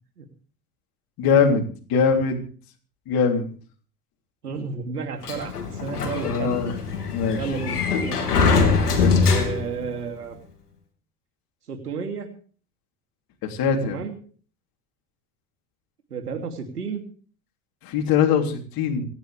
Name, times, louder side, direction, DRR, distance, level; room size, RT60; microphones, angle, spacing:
voice 1, 1.2-2.4 3.1-3.5 6.2-6.7 7.1-7.5 7.9-8.0 8.5-9.2 13.4-14.0 17.8-19.1, left 6 dB, 50° left, 2 dB, 3.4 m, -22 dB
voice 2, 4.4-6.6 7.4-8.4 9.2-10.4 11.7-12.3 13.8-14.2 16.1-17.0, right 5 dB, 85° right, 4 dB, 3.0 m, -32 dB
Sliding door, 5.2-9.9, left 4 dB, 85° left, 2.8 m, -23 dB
27.5 x 10.5 x 3.4 m, 0.42 s
figure-of-eight pair, 70°, 45 cm